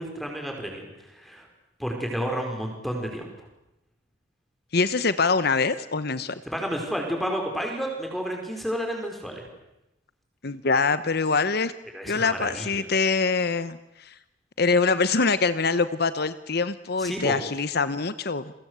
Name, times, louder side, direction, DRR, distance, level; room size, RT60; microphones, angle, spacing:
voice 1, 0.0-1.5 1.8-3.3 6.5-9.4 11.9-12.7 17.0-17.4, equal, ahead, 2 dB, 5.0 m, -31 dB
voice 2, 4.7-6.4 10.4-11.7 12.1-14.1 14.6-18.5, left 4 dB, 55° left, 13 dB, 1.0 m, -24 dB
29.5 x 23.0 x 8.2 m, 0.90 s
head